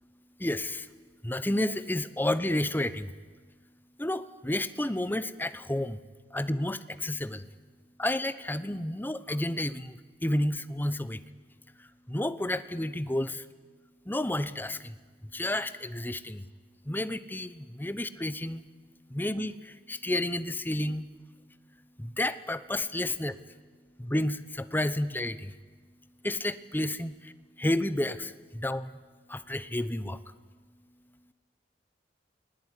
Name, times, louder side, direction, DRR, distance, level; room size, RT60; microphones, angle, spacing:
voice 1, 0.4-0.9 1.2-3.1 4.0-6.0 6.3-7.5 8.0-11.2 11.8-13.5 14.1-15.0 15.2-16.5 16.8-18.6 19.1-21.1 22.0-23.4 24.0-25.5 26.2-27.3 27.6-29.0 29.3-30.2, left 1 dB, 10° left, 14 dB, 0.9 m, -31 dB
28.5 x 19.5 x 9.9 m, 1.3 s
head